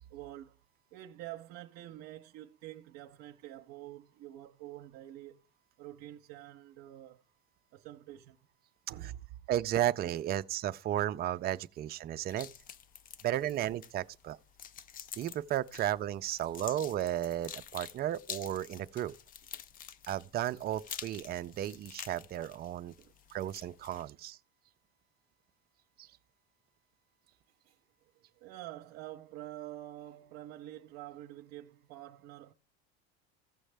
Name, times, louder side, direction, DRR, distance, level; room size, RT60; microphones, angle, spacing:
voice 1, 0.1-0.6 0.9-5.4 5.8-7.2 7.7-8.4 8.9-9.3 23.0-23.5 27.6-32.5, right 14 dB, 60° right, 0.7 m, -47 dB
voice 2, 9.5-12.5 13.2-14.4 15.2-19.1 20.1-22.9 23.3-24.4 26.0-26.1, right 12 dB, 30° right, 0.4 m, -34 dB
sound 1, 12.3-24.1, left 8 dB, 30° left, 0.4 m, -48 dB
15.5 x 6.3 x 3.4 m
supercardioid pair, 120°, 31 cm